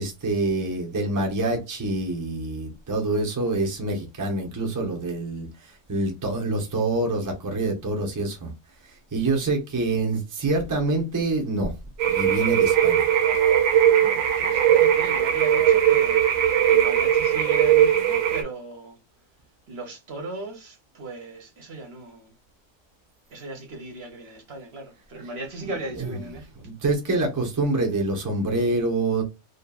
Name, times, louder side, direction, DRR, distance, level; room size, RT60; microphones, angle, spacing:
voice 1, 0.0-8.5 8.8-11.7 12.1-13.1 25.6-26.3 26.6-29.2, right 2 dB, 20° right, 0.5 m, -26 dB
sound 1, 12.0-18.4, right 10 dB, 80° right, 1.1 m, -19 dB
voice 2, 13.9-16.2 16.7-19.0 19.7-22.3 23.3-26.5, right 2 dB, 55° right, 0.9 m, -37 dB
2.8 x 2.6 x 2.3 m
omnidirectional pair, 1.4 m